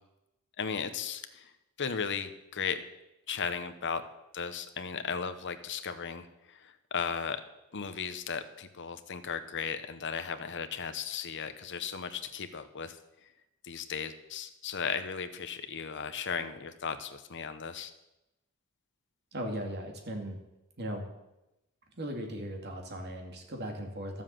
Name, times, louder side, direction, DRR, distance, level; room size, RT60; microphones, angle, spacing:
voice 1, 0.6-1.5 1.8-2.8 3.3-4.0 4.3-7.4 7.7-13.0 13.6-17.9, left 6 dB, 55° left, 10 dB, 1.0 m, -36 dB
voice 2, 19.3-20.4 20.8-21.0 22.0-24.2, equal, 50° right, 2 dB, 2.4 m, -37 dB
12.5 x 7.4 x 7.6 m, 0.93 s
head